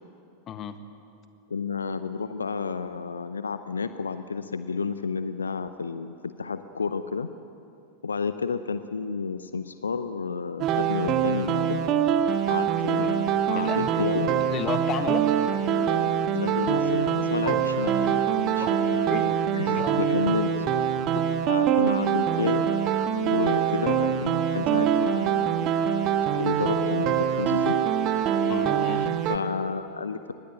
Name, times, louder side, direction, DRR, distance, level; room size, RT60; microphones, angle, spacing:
voice 1, 1.5-7.3 8.0-11.8 12.5-14.3 16.3-18.7 19.5-20.6 21.5-22.7 23.3-25.6 26.3-27.8 29.0-30.4, left 5 dB, 75° left, 12 dB, 0.7 m, -31 dB
sound 1, 10.6-29.4, right 8 dB, 35° right, 1.5 m, -24 dB
voice 2, 13.5-14.2 14.5-15.2 17.4-17.6 18.6-18.7 19.1-19.4 19.6-20.1 21.1-21.2 28.5-29.1, left 9 dB, 30° left, 9 dB, 1.6 m, -33 dB
24.0 x 20.0 x 9.2 m, 2.6 s
figure-of-eight pair, 90°, 0 cm